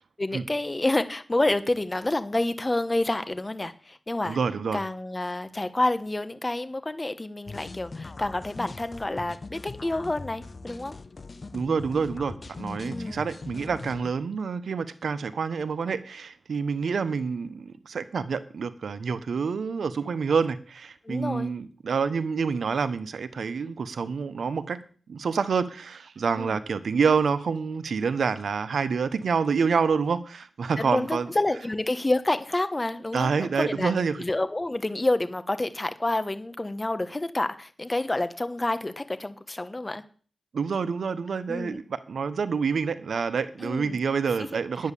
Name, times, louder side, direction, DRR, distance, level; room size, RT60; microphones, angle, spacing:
voice 1, 0.2-4.4 4.7-10.9 12.8-13.3 21.0-21.5 26.4-26.6 30.8-40.0 41.5-41.8 43.6-44.0 44.2-44.6, left 2 dB, 25° left, 11 dB, 1.2 m, -28 dB
voice 2, 4.2-4.8 11.5-24.8 25.1-31.3 33.1-34.2 40.5-44.9, right 5 dB, 75° right, 13 dB, 1.0 m, -27 dB
sound 1, 7.5-14.1, left 3 dB, 45° left, 0.9 m, -40 dB
10.5 x 8.6 x 7.0 m, 0.42 s
cardioid pair, 60°, 0 cm